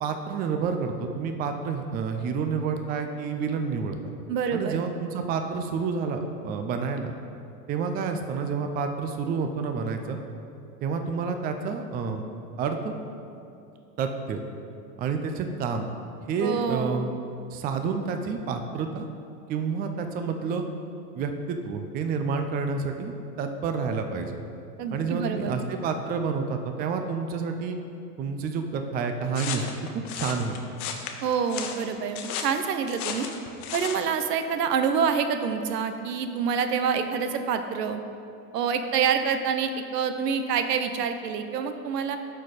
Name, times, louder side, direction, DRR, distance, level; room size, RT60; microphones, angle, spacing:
voice 1, 0.0-4.1 4.5-7.1 7.7-10.2 10.8-12.2 12.6-12.9 14.0-14.4 15.0-15.9 16.3-17.1 17.5-19.1 19.5-20.6 21.1-24.4 24.9-27.8 28.2-30.5, right 5 dB, 20° right, 6 dB, 0.4 m, -29 dB
voice 2, 4.3-4.8 16.4-17.0 24.8-25.5 31.2-33.3 33.7-38.0 38.5-42.2, right 6 dB, 80° right, 8 dB, 0.8 m, -27 dB
sound 1, 29.3-34.1, left 7 dB, 65° left, 1.0 m, -34 dB
12.0 x 4.4 x 4.1 m, 2.6 s
hypercardioid pair, 105°, 47 cm